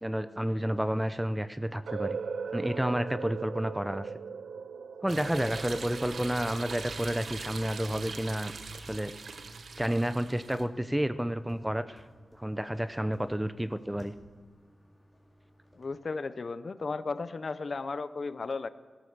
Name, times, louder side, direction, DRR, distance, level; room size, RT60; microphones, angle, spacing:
voice 1, 0.0-2.2 2.5-4.1 5.0-9.1 9.8-12.0 12.4-14.1, equal, 5° right, 13 dB, 0.5 m, -30 dB
sound 1, 1.9-7.7, right 5 dB, 80° right, 0.4 m, -39 dB
sound 2, 5.1-10.6, right 4 dB, 60° right, 0.9 m, -41 dB
sound 3, 10.4-15.8, equal, 15° left, 3.7 m, -59 dB
voice 2, 15.8-18.7, left 4 dB, 45° left, 14 dB, 0.6 m, -35 dB
17.0 x 11.0 x 6.6 m, 1.5 s
wide cardioid pair, 135°, 0 cm